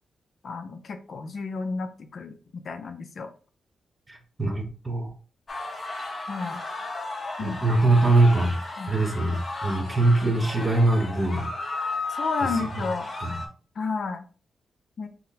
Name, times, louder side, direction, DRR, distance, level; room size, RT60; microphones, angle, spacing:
voice 1, 0.4-3.3 6.3-6.6 7.4-7.6 8.8-9.0 12.1-13.1 13.8-14.3 15.0-15.1, left 4 dB, 55° left, 7 dB, 0.4 m, -32 dB
voice 2, 4.1-5.1 7.4-8.5 8.9-11.5 13.2-13.4, right 2 dB, 20° right, 3 dB, 0.9 m, -22 dB
sound 1, 5.5-13.5, left 3 dB, 35° left, 0.9 m, -34 dB
5.7 x 2.0 x 2.7 m, 0.37 s
wide cardioid pair, 125°, 0 cm